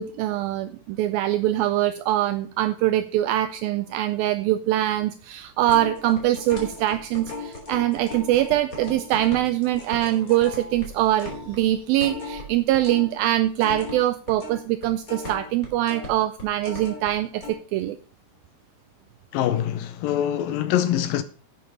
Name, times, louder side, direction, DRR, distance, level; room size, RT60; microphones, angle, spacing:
voice 1, 0.0-18.0, right 14 dB, 80° right, 2.3 m, -23 dB
sound 1, 5.6-13.1 13.4-17.1 17.4-17.5, left 2 dB, 25° left, 3.4 m, -37 dB
voice 2, 19.3-21.2, left 11 dB, 75° left, 2.3 m, -24 dB
11.0 x 8.4 x 5.4 m
omnidirectional pair, 4.5 m